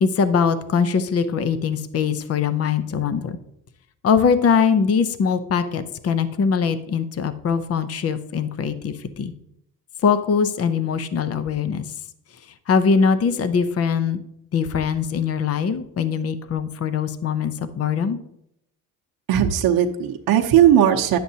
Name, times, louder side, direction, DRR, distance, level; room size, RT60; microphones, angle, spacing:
voice 1, 0.0-3.4 4.0-9.3 10.0-11.8 12.7-14.2 14.5-18.2, left 6 dB, 40° left, 12 dB, 0.7 m, -22 dB
voice 2, 19.3-21.2, right 10 dB, 65° right, 2 dB, 0.8 m, -17 dB
10.0 x 7.6 x 2.8 m, 0.76 s
cardioid pair, 100°, 39 cm